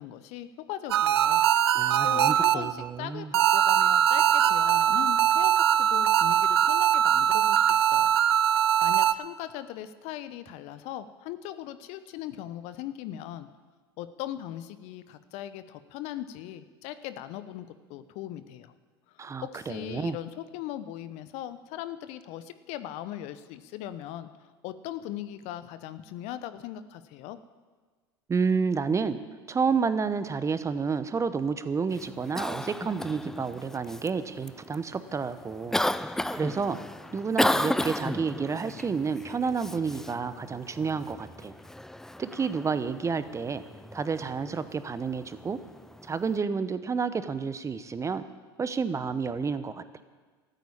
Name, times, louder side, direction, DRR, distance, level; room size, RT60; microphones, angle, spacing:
voice 1, 0.0-1.4 2.0-8.2 8.5-13.5 14.0-18.7 19.4-24.3 24.6-27.4, left 12 dB, 55° left, 13 dB, 0.8 m, -39 dB
sound 1, 0.9-2.9 3.3-9.1, right 10 dB, 80° right, 0.5 m, -22 dB
voice 2, 1.7-3.3 19.2-20.2 28.3-29.2 29.5-36.8 37.1-41.5 42.2-43.6 43.9-45.6 46.0-48.2 48.6-50.0, right 5 dB, 20° right, 13 dB, 0.9 m, -30 dB
Cough, 31.9-46.4, left 1 dB, 5° left, 0.4 m, -34 dB
13.5 x 9.3 x 8.6 m, 1.4 s
hypercardioid pair, 80°, 13 cm